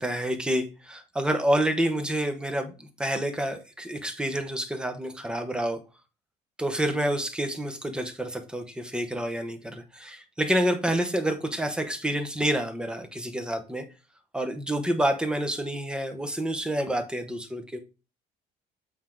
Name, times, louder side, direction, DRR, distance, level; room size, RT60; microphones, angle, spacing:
voice 1, 0.0-5.8 6.6-13.8 14.3-17.8, right 1 dB, 5° right, 0.9 m, -28 dB
8.3 x 4.5 x 3.7 m
cardioid pair, 165°, 17 cm